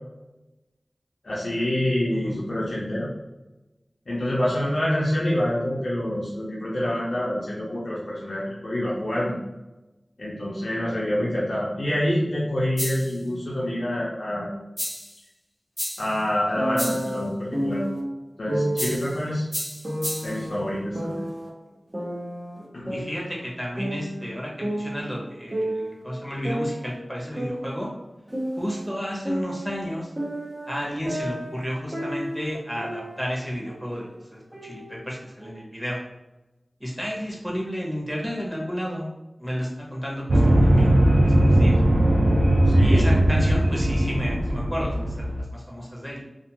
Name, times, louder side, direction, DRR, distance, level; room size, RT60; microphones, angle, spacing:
voice 1, 1.2-3.1 4.1-9.4 10.2-14.5 16.0-17.8 18.4-19.5 20.2-21.2 22.7-23.0 42.6-43.1, left 1 dB, 85° left, -7 dB, 0.6 m, -26 dB
sound 1, 12.8-13.2 14.8-15.2 15.8-16.2 16.8-17.2 18.8-19.2 19.5-20.4, equal, 15° left, 0.3 m, -32 dB
sound 2, 16.6-18.0 18.5-19.0 19.8-21.5 21.9-23.5 23.8-26.0 26.4-28.9 29.2-33.4 33.6-34.0 34.5-35.5, right 1 dB, 35° right, 0.7 m, -31 dB
voice 2, 22.9-27.9 28.6-30.1 30.6-36.0 36.8-39.1 39.4-41.8 42.8-46.2, equal, ahead, -3 dB, 0.9 m, -32 dB
sound 3, 40.3-45.4, right 1 dB, 75° right, 0.4 m, -19 dB
2.4 x 2.4 x 2.8 m, 1.0 s
wide cardioid pair, 55°, 0 cm